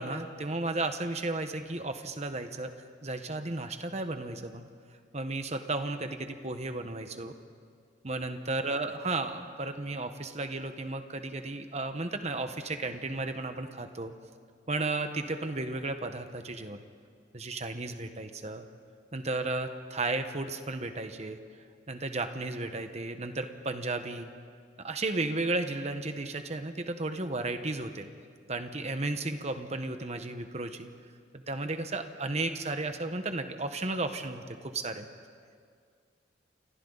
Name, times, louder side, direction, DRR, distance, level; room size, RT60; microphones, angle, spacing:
voice 1, 0.0-2.7 3.0-4.7 5.1-7.3 8.0-14.1 14.7-16.8 17.3-18.7 19.1-21.4 21.9-24.3 24.8-28.1 28.5-30.9 31.3-35.1, right 2 dB, 40° right, 7 dB, 1.3 m, -34 dB
29.5 x 27.5 x 4.1 m, 2.1 s
head